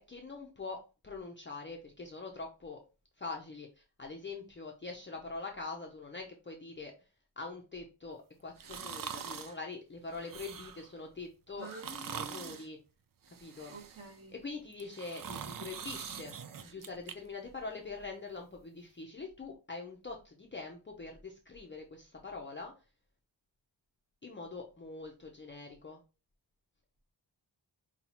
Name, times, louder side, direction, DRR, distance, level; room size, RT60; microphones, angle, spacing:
voice 1, 0.0-2.8 3.2-6.9 7.4-11.7 12.1-12.8 13.4-13.7 14.3-16.3 16.6-22.7 24.2-26.0, left 3 dB, 25° left, 0.6 m, -44 dB
sound 1, 8.6-9.6 10.1-10.9 11.6-12.7 13.2-14.2 14.7-17.1 17.5-17.6, right 7 dB, 50° right, 0.5 m, -43 dB
voice 2, 11.6-12.6 13.7-14.4, right 3 dB, 30° right, 1.2 m, -48 dB
5.5 x 2.3 x 2.9 m
wide cardioid pair, 130°, 44 cm